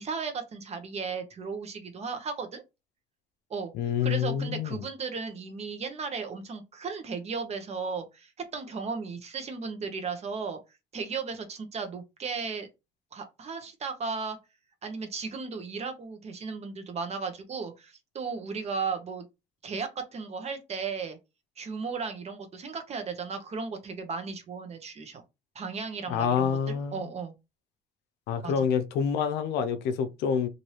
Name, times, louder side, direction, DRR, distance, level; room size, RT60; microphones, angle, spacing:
voice 1, 0.0-2.6 3.5-3.7 4.0-10.6 10.9-12.7 13.1-14.4 14.8-19.2 19.6-21.2 21.6-25.2 25.5-27.3 28.4-28.7, right 5 dB, 40° right, 0.8 m, -35 dB
voice 2, 3.7-4.8 26.1-27.0 28.3-30.5, left 7 dB, 85° left, 0.5 m, -27 dB
3.1 x 2.6 x 2.9 m
cardioid pair, 110°, 17 cm